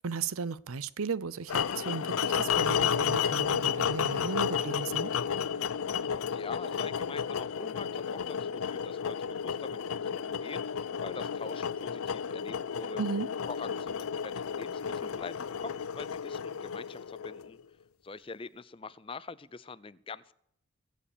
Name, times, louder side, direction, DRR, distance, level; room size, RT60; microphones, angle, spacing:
voice 1, 0.0-5.1 13.0-13.3, right 5 dB, 85° right, 0.7 m, -35 dB
sound 1, 1.5-17.6, left 7 dB, 85° left, 0.5 m, -32 dB
voice 2, 5.9-13.0 13.4-17.6 18.0-20.3, left 4 dB, 25° left, 0.5 m, -44 dB
21.5 x 7.5 x 6.8 m
head